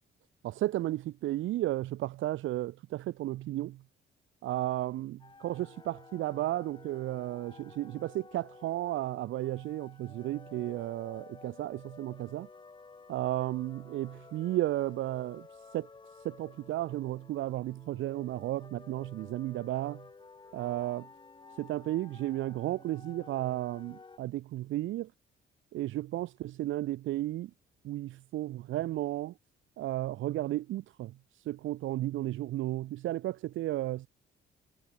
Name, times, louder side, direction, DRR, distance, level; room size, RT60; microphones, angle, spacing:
voice 1, 0.4-3.8 4.4-12.5 13.1-15.5 15.7-15.9 16.1-20.0 20.5-21.1 21.6-25.1 25.7-27.5 27.8-29.3 29.8-34.1, right 15 dB, 80° right, 0.9 m, -33 dB
sound 1, 5.2-24.2, left 4 dB, 25° left, 1.3 m, -53 dB
cardioid pair, 90°, 20 cm